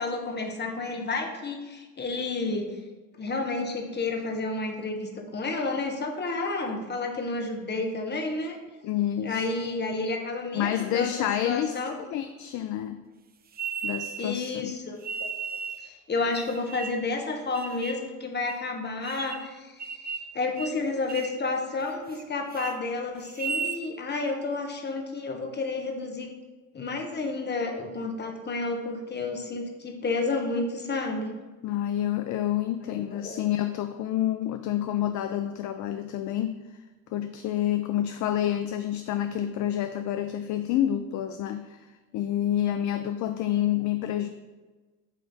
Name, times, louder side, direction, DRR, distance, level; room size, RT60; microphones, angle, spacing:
voice 1, 0.0-2.7 3.2-8.6 9.2-11.9 14.2-26.3 26.7-31.3 32.8-33.4, left 3 dB, 25° left, 3 dB, 1.1 m, -31 dB
voice 2, 8.8-9.5 10.5-13.0 13.8-14.7 31.6-36.8 37.1-44.3, left 11 dB, 50° left, 9 dB, 0.4 m, -28 dB
sound 1, 13.5-14.4 15.0-15.9 16.3-17.1 17.5-18.0 18.5-18.6 19.0-19.5 19.8-20.3 20.6-20.8 21.1-21.4 21.8-22.2 22.5-22.8 23.3-23.8, right 6 dB, 25° right, 0.5 m, -35 dB
8.1 x 3.1 x 4.0 m, 1.2 s
hypercardioid pair, 70°, 40 cm